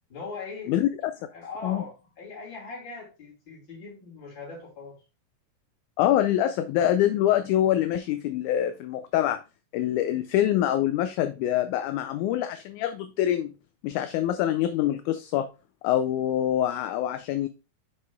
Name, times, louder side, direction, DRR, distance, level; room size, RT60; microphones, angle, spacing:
voice 1, 0.1-0.8 1.3-5.0, left 4 dB, 35° left, 3.3 m, -40 dB
voice 2, 0.7-1.1 1.6-1.8 6.0-9.4 9.7-13.5 13.8-15.5 15.8-17.5, left 12 dB, 80° left, 1.9 m, -25 dB
7.7 x 6.0 x 2.3 m
omnidirectional pair, 3.7 m